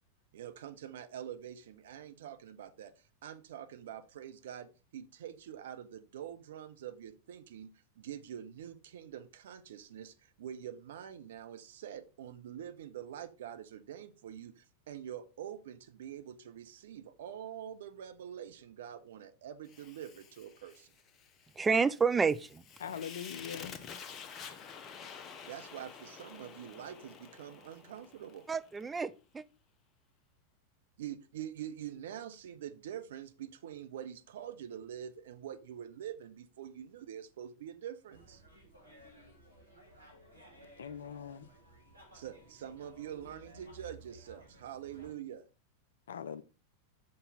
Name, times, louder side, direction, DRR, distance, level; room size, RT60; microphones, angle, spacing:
voice 1, 0.3-7.7 8.0-20.9 25.4-28.5 31.0-38.4 42.1-45.4, right 10 dB, 60° right, 0.7 m, -45 dB
Fire, 19.7-28.9, left 6 dB, 30° left, 0.8 m, -50 dB
voice 2, 21.6-22.6 28.5-29.4, right 5 dB, 15° right, 0.4 m, -29 dB
voice 3, 22.8-23.8 40.8-41.5 46.1-46.4, left 8 dB, 65° left, 0.4 m, -42 dB
sound 1, 38.1-45.1, right 1 dB, 90° right, 2.0 m, -57 dB
6.8 x 5.4 x 4.2 m
figure-of-eight pair, 90°, 0 cm